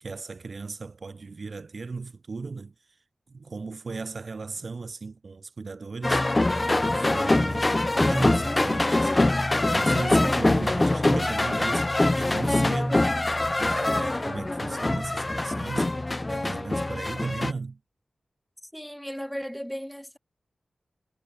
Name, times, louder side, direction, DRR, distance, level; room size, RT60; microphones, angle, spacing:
voice 1, 0.0-2.7 3.3-13.2 13.6-16.0 16.3-17.8, right 4 dB, 55° right, 0.9 m, -36 dB
sound 1, 6.0-17.5, left 2 dB, 25° left, 0.3 m, -24 dB
voice 2, 18.6-20.2, equal, ahead, 1.2 m, -36 dB
wide cardioid pair, 120°, 0 cm